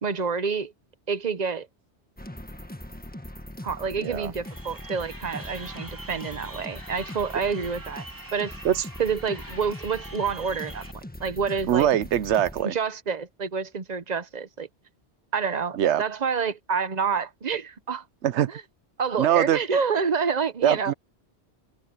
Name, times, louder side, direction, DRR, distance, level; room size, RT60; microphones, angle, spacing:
voice 1, 0.0-0.7 1.1-1.7 3.6-8.1 8.3-8.6 9.0-10.9 11.2-11.9 12.6-14.7 15.3-18.0 18.5-18.6 19.0-20.9, right 5 dB, 40° right, 0.9 m, -28 dB
sound 1, 2.2-12.6, left 1 dB, 10° left, 1.5 m, -41 dB
voice 2, 4.0-4.3 8.6-8.8 11.7-12.7 15.8-16.0 18.2-18.5 19.2-19.6 20.6-20.9, right 11 dB, 80° right, 1.0 m, -22 dB
Crowd, 4.4-10.9, right 1 dB, 15° right, 2.5 m, -44 dB
omnidirectional pair, 1.2 m